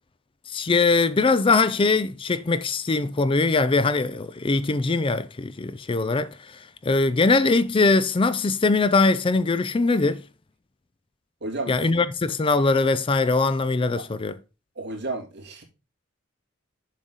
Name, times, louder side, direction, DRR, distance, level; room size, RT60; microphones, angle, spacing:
voice 1, 0.5-6.3 6.8-10.2 11.7-14.4, left 3 dB, 25° left, 0.4 m, -21 dB
voice 2, 11.4-11.8 14.8-15.6, right 2 dB, 55° right, 3.1 m, -32 dB
7.3 x 6.4 x 4.0 m
head